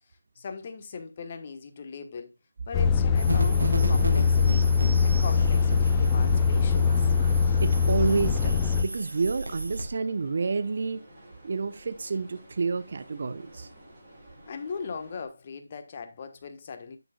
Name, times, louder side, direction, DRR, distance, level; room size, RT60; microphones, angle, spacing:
voice 1, 0.3-2.3 2.7-4.7 5.0-7.1 14.5-17.0, left 5 dB, 30° left, 1.3 m, -39 dB
Truck, 2.7-8.8, left 5 dB, 10° left, 0.5 m, -22 dB
sound 1, 3.1-9.9, right 1 dB, 60° right, 3.8 m, -33 dB
sound 2, 4.0-15.3, right 1 dB, 15° right, 7.1 m, -51 dB
voice 2, 7.6-11.0 11.4-13.7, right 4 dB, 40° right, 0.8 m, -29 dB
10.0 x 9.1 x 2.4 m
figure-of-eight pair, 160°, 0 cm